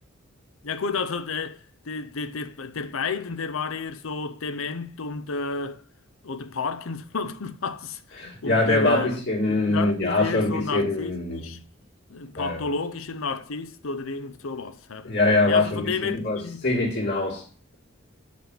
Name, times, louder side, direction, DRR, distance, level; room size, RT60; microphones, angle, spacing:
voice 1, 0.6-5.8 6.2-9.2 9.7-11.6 12.1-15.1 15.4-16.6, left 4 dB, 75° left, 0.7 m, -31 dB
voice 2, 8.2-11.5 12.4-12.7 15.0-17.4, left 2 dB, 55° left, 2.7 m, -24 dB
5.2 x 5.1 x 5.8 m
head